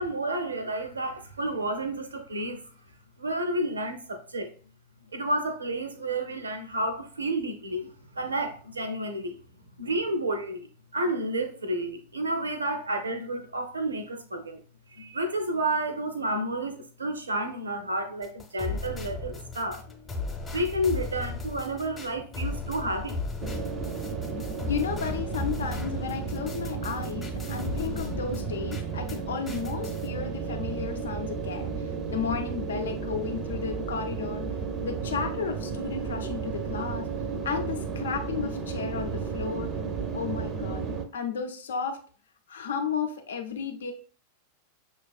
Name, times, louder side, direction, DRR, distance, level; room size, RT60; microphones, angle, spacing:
voice 1, 0.0-2.6 3.2-4.5 5.1-9.4 9.8-14.6 14.9-19.8 20.5-23.2, right 1 dB, 75° right, 0.5 m, -31 dB
sound 1, 18.2-29.2 29.5-30.1, left 3 dB, 15° left, 0.8 m, -36 dB
sound 2, 23.4-41.1, right 5 dB, 30° right, 0.5 m, -33 dB
voice 2, 24.6-34.4 34.8-37.1 37.4-39.7 40.1-40.8 41.1-42.0 42.5-43.9, left 6 dB, 65° left, 0.6 m, -33 dB
6.0 x 2.4 x 2.3 m
figure-of-eight pair, 90°, 0 cm